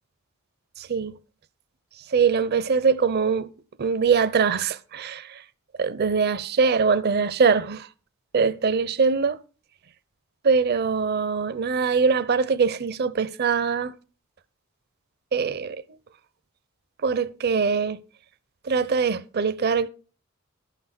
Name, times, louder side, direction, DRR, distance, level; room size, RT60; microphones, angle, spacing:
voice 1, 0.8-1.1 2.1-3.5 3.8-5.4 5.8-7.9 8.3-9.4 10.4-13.9 15.3-15.8 17.0-18.0 18.6-19.9, right 5 dB, 50° right, 0.6 m, -22 dB
12.0 x 5.9 x 5.9 m
head